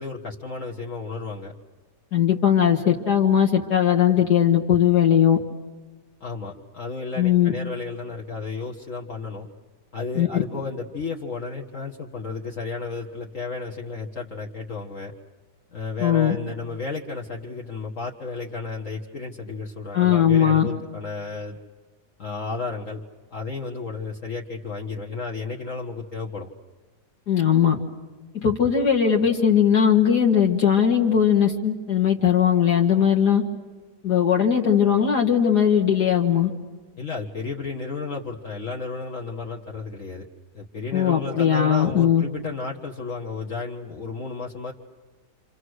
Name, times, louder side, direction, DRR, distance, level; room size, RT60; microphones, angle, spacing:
voice 1, 0.0-1.5 6.2-9.5 9.9-15.1 15.7-21.6 22.2-23.0 23.3-26.5 37.0-40.3 40.5-44.7, left 4 dB, 50° left, -1 dB, 1.9 m, -33 dB
voice 2, 2.1-5.4 7.2-7.5 10.1-10.4 16.0-16.4 19.9-20.7 27.3-27.8 28.4-33.4 34.0-36.5 40.9-42.2, left 8 dB, 65° left, 0 dB, 2.3 m, -19 dB
29.5 x 27.0 x 6.4 m, 1.3 s
omnidirectional pair, 1.8 m